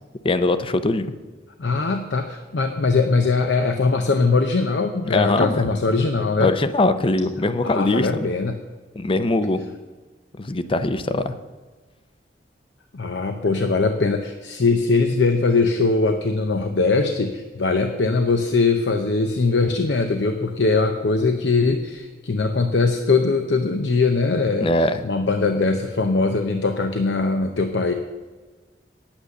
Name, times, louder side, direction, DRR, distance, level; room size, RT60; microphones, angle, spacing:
voice 1, 0.2-1.1 5.1-5.6 6.4-8.3 9.0-9.6 10.4-11.3 24.6-25.0, left 2 dB, 30° left, 12 dB, 0.6 m, -21 dB
voice 2, 1.6-6.5 7.6-8.6 12.9-24.7 25.0-27.9, left 3 dB, 85° left, 6 dB, 0.7 m, -21 dB
9.7 x 8.8 x 6.6 m, 1.3 s
head